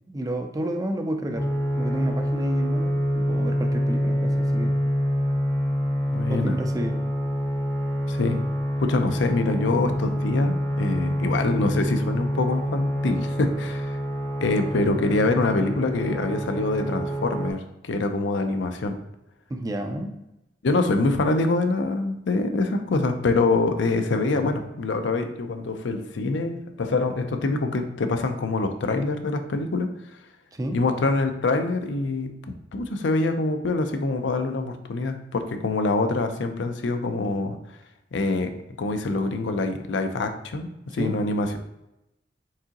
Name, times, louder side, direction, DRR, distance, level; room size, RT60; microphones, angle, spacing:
voice 1, 0.1-1.5 1.8-4.8 6.3-7.0 19.5-20.1 30.5-30.8 40.9-41.2, right 1 dB, 20° right, 5 dB, 0.4 m, -30 dB
sound 1, 1.4-17.5, equal, 15° left, 0.7 m, -26 dB
voice 2, 6.1-6.5 8.1-8.4 8.8-14.0 14.4-19.0 20.6-29.9 30.7-37.6 38.1-41.6, left 3 dB, 70° left, 7 dB, 0.5 m, -25 dB
4.6 x 3.7 x 2.9 m, 0.90 s
head